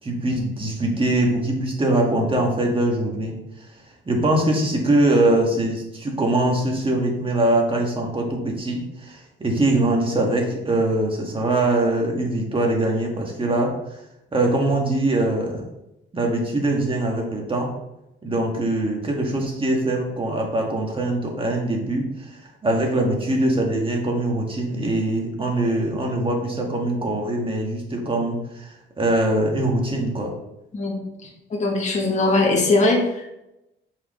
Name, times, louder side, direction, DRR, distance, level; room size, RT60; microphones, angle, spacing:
voice 1, 0.0-3.4 4.1-13.8 14.3-15.6 16.1-17.7 18.2-30.3, right 1 dB, 25° right, 0 dB, 1.8 m, -22 dB
voice 2, 31.5-33.0, left 2 dB, 35° left, -1 dB, 1.5 m, -20 dB
6.8 x 5.1 x 3.2 m, 0.89 s
cardioid pair, 90°, 20 cm